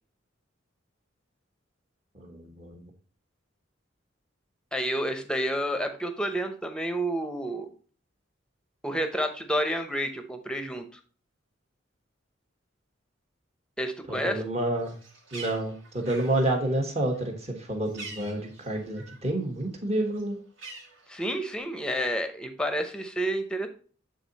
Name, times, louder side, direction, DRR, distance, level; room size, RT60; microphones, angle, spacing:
voice 1, 2.1-2.8 14.1-14.9 15.3-20.4, right 1 dB, 35° right, 2 dB, 1.4 m, -29 dB
voice 2, 4.7-7.7 8.8-11.0 13.8-14.4 21.1-23.7, equal, 5° left, 7 dB, 0.8 m, -30 dB
Bird, 14.7-19.3 19.7-21.6, right 3 dB, 80° right, 2.2 m, -46 dB
8.2 x 3.8 x 4.1 m, 0.41 s
head